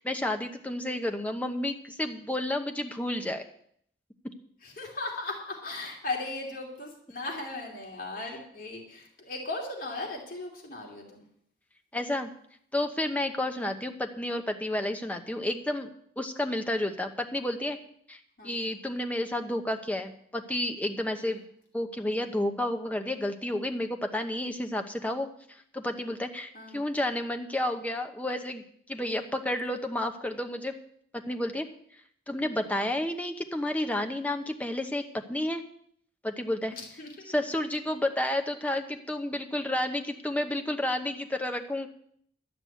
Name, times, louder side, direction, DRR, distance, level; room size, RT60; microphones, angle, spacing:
voice 1, 0.0-3.4 11.9-12.3 12.7-15.9 16.2-17.8 18.1-21.4 21.7-28.6 28.9-30.7 31.1-31.7 32.3-35.6 36.2-36.7 37.3-41.9, left 1 dB, 10° left, 5 dB, 0.9 m, -31 dB
voice 2, 4.6-11.3 13.5-13.7 18.4-18.6 21.2-21.4 26.5-26.8 36.7-37.3, left 2 dB, 50° left, -1 dB, 3.0 m, -37 dB
12.0 x 6.1 x 9.3 m, 0.66 s
head